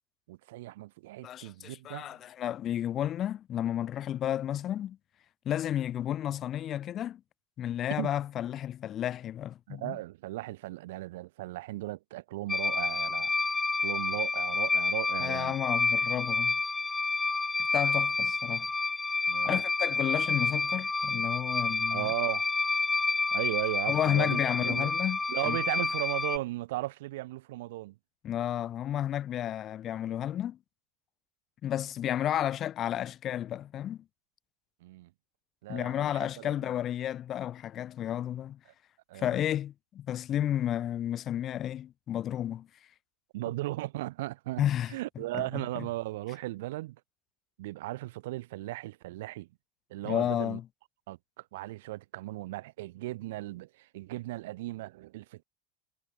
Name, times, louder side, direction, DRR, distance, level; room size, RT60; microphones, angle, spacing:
voice 1, 0.3-2.2 8.0-8.1 9.7-13.3 13.8-15.5 19.3-19.6 20.1-20.2 21.9-22.5 23.3-24.9 25.3-28.0 34.8-35.1 35.6-36.7 39.1-39.4 43.3-44.6 44.9-47.0 47.6-49.5 49.9-50.6 51.1-55.4, right 18 dB, 80° right, 3.2 m, -36 dB
voice 2, 1.2-5.0 5.5-7.2 7.6-10.0 15.2-16.6 17.7-18.7 19.4-22.1 23.9-25.2 25.4-25.6 28.2-30.6 31.6-34.0 35.7-38.6 39.1-42.7 44.6-44.9 45.3-45.9 50.0-50.6, left 11 dB, 35° left, 2.3 m, -32 dB
sound 1, 12.5-26.4, left 3 dB, 10° left, 0.9 m, -29 dB
supercardioid pair, 140°, 0 cm